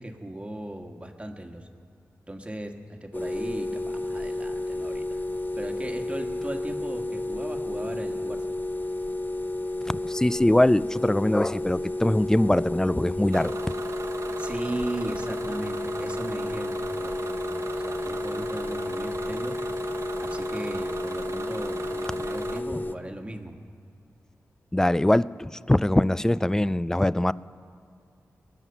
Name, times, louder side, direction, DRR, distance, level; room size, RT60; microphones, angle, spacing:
voice 1, 0.0-1.7 2.3-5.2 5.6-8.6 14.4-19.6 20.2-23.6, right 1 dB, 20° right, 4 dB, 1.5 m, -37 dB
sound 1, 3.1-22.9, left 2 dB, 30° left, 0.7 m, -32 dB
voice 2, 9.9-13.6 24.7-27.3, left 1 dB, 10° left, 19 dB, 0.3 m, -22 dB
Bus / Engine, 13.3-22.6, right 4 dB, 55° right, 1.0 m, -38 dB
20.0 x 9.2 x 7.0 m, 2.4 s
cardioid pair, 60°, 6 cm